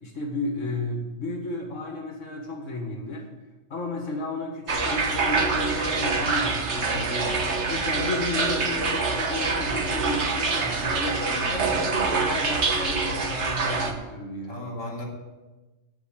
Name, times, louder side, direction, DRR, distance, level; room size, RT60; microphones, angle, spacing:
voice 1, 0.0-3.3 3.7-7.1 7.7-14.6, left 2 dB, 75° left, 2 dB, 1.9 m, -32 dB
sound 1, 4.7-13.9, right 4 dB, 65° right, 1.4 m, -25 dB
voice 2, 6.7-7.3 11.1-11.5 14.5-15.0, left 1 dB, 20° left, -4 dB, 3.0 m, -36 dB
8.9 x 8.0 x 8.0 m, 1.1 s
omnidirectional pair, 1.3 m